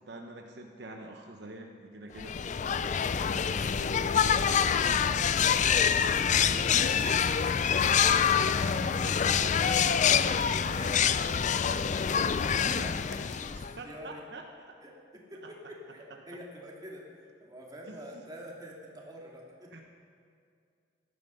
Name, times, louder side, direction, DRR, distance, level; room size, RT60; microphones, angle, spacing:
voice 1, 0.1-2.4 8.8-10.2 12.6-12.9 13.7-14.4 15.4-15.7 17.9-18.2 19.7-19.8, right 2 dB, 65° right, 2 dB, 1.1 m, -45 dB
voice 2, 2.1-7.3 7.8-12.0 12.3-14.2 14.8-19.8, equal, 20° right, -2 dB, 2.4 m, -47 dB
sound 1, 2.2-13.8, left 7 dB, 40° left, 0.4 m, -26 dB
16.5 x 11.5 x 5.6 m, 2.3 s
head